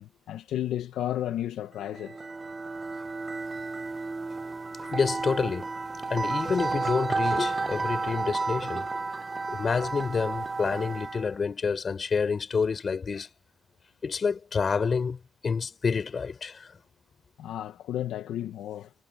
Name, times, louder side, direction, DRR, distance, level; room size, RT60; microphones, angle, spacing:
voice 1, 0.0-2.2 17.4-18.9, left 12 dB, 80° left, 1.3 m, -33 dB
sound 1, 1.9-11.3, right 3 dB, 25° right, 0.9 m, -32 dB
voice 2, 4.8-5.7 6.1-8.9 9.5-13.3 14.0-16.7, left 5 dB, 40° left, 5.1 m, -28 dB
cardioid pair, 90°, 0 cm